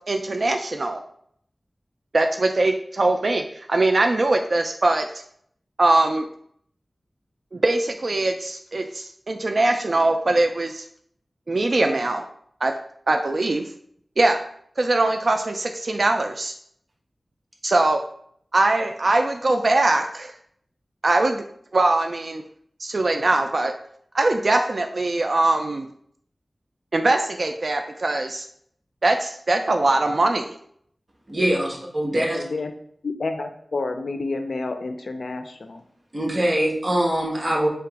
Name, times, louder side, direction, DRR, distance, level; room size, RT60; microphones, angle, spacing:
voice 1, 0.1-1.0 2.1-5.1 5.8-6.3 7.5-10.8 11.5-12.2 12.6-12.7 13.1-13.7 14.2-14.4 14.8-16.5 17.6-18.0 18.5-20.3 21.0-21.4 21.7-22.4 22.8-23.7 24.1-25.9 26.9-28.4 29.0-30.6, right 2 dB, 60° right, 5 dB, 0.3 m, -21 dB
voice 2, 31.3-32.4 36.1-37.7, right 1 dB, 40° right, -2 dB, 1.2 m, -23 dB
voice 3, 32.3-32.7 33.0-35.8, left 3 dB, 80° left, 6 dB, 0.5 m, -29 dB
3.4 x 2.9 x 4.7 m, 0.65 s
wide cardioid pair, 80°, 0 cm